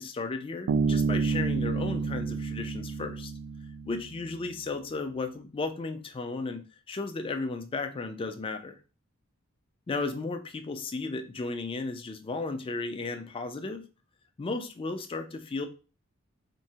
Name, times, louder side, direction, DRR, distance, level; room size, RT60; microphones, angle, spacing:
voice 1, 0.0-3.3 3.9-8.8 9.9-13.9 14.4-15.7, left 3 dB, 25° left, 7 dB, 0.4 m, -34 dB
Bass guitar, 0.7-4.2, right 5 dB, 70° right, 0.3 m, -29 dB
4.4 x 2.0 x 2.7 m, 0.34 s
head